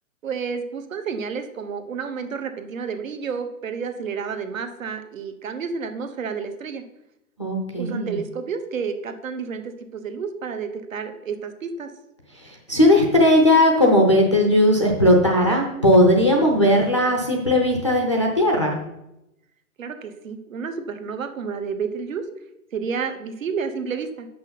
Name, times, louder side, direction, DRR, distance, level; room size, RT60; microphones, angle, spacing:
voice 1, 0.2-6.8 7.8-11.9 19.8-22.2 22.7-24.3, right 5 dB, 60° right, 8 dB, 1.1 m, -30 dB
voice 2, 7.4-8.2 12.4-18.7, left 1 dB, 20° left, 1 dB, 0.5 m, -17 dB
7.6 x 6.1 x 5.8 m, 0.87 s
hypercardioid pair, 175°, 44 cm